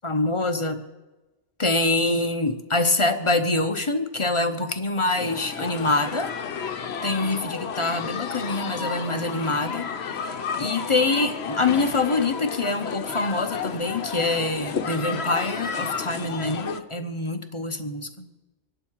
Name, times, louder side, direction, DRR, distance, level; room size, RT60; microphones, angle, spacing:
voice 1, 0.0-0.8 1.6-6.3 7.0-9.9 10.6-18.3, left 2 dB, 30° left, 7 dB, 0.9 m, -25 dB
sound 1, 5.2-16.8, left 6 dB, 60° left, 1.1 m, -32 dB
26.0 x 11.0 x 4.7 m, 1.1 s
omnidirectional pair, 1.2 m